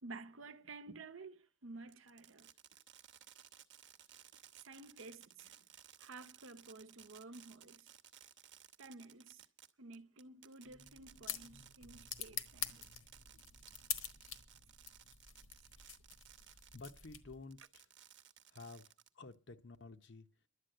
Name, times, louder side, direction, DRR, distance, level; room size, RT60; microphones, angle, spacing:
voice 1, 0.0-2.5 4.7-5.6 6.0-7.9 8.8-9.4 9.8-12.8, right 3 dB, 75° right, 0.9 m, -52 dB
Fireworks, 1.9-17.1 17.5-19.3, right 10 dB, 60° right, 0.9 m, -60 dB
sound 1, 10.6-17.6, left 9 dB, 80° left, 1.4 m, -47 dB
voice 2, 16.7-17.8 18.5-18.8 19.2-20.3, left 3 dB, 60° left, 0.8 m, -52 dB
11.5 x 8.5 x 7.7 m
head